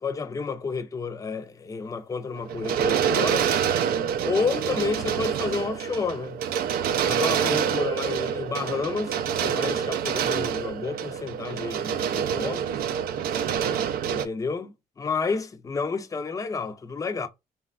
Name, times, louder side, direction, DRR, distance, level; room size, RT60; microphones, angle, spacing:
voice 1, 0.0-3.5 4.2-6.4 7.0-9.2 9.4-12.8 14.1-17.3, left 4 dB, 20° left, 0.5 m, -30 dB
sound 1, 2.4-14.3, right 8 dB, 70° right, 0.4 m, -26 dB
3.0 x 2.3 x 2.3 m
cardioid pair, 95°, 16 cm